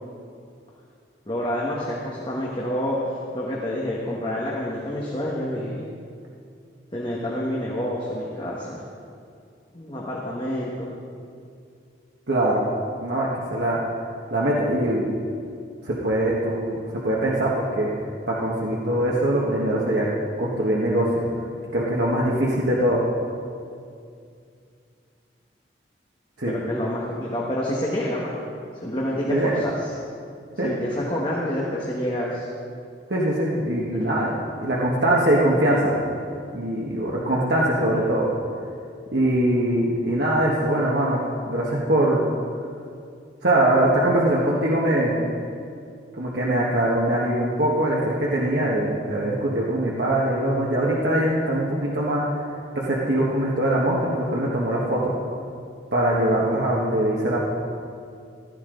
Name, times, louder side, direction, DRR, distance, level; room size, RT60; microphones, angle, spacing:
voice 1, 1.3-5.8 6.9-8.8 9.7-10.9 26.5-28.4 28.8-29.9 30.6-32.5, left 1 dB, 25° left, -5 dB, 1.5 m, -28 dB
voice 2, 12.3-12.6 13.0-13.8 14.3-15.1 15.8-16.8 17.0-17.9 18.3-20.1 20.4-21.2 21.7-23.0 26.4-26.5 29.3-29.5 30.6-30.8 33.1-34.3 34.6-36.1 36.5-38.3 39.1-42.2 43.4-45.2 46.2-52.4 52.7-55.1 55.9-57.5, right 1 dB, 65° right, -5 dB, 1.6 m, -22 dB
15.5 x 13.0 x 3.9 m, 2.4 s
head